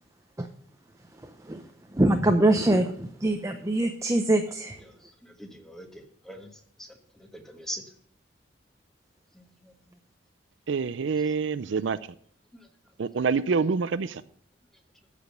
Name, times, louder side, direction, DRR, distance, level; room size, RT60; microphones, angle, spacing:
voice 1, 1.9-4.8, right 1 dB, 15° right, 6 dB, 0.6 m, -23 dB
voice 2, 4.8-6.5 6.8-6.9 7.2-7.8 9.3-9.7 12.5-12.7, right 1 dB, ahead, 4 dB, 1.3 m, -42 dB
voice 3, 10.7-12.0 13.0-14.2, right 5 dB, 75° right, 15 dB, 0.5 m, -26 dB
13.0 x 5.1 x 6.6 m, 0.64 s
head